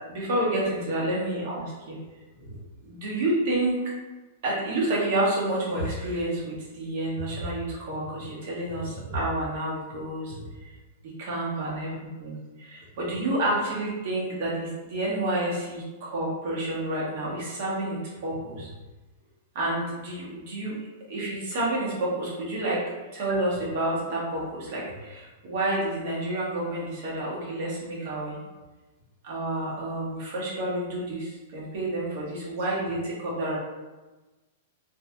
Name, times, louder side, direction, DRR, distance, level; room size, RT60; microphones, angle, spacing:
voice 1, 0.1-2.0 2.4-3.8 4.4-10.5 11.2-11.9 12.2-18.7 19.5-20.7 21.1-22.8 23.1-28.4 29.2-33.6, right 1 dB, 50° right, -6 dB, 1.1 m, -29 dB
3.1 x 2.7 x 2.3 m, 1.2 s
supercardioid pair, 165°, 0 cm